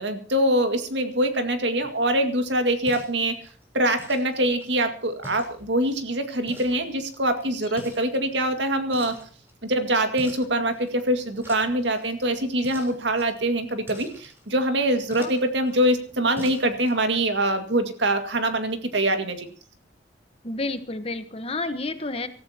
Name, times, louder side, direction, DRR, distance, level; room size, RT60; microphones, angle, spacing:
voice 1, 0.0-3.4 3.7-9.2 9.6-19.5, right 1 dB, 85° right, 6 dB, 2.1 m, -24 dB
sound 1, 1.8-17.0, equal, 15° right, 3.8 m, -47 dB
voice 2, 20.4-22.3, left 2 dB, 35° left, 10 dB, 1.2 m, -30 dB
25.0 x 14.0 x 2.9 m, 0.42 s
head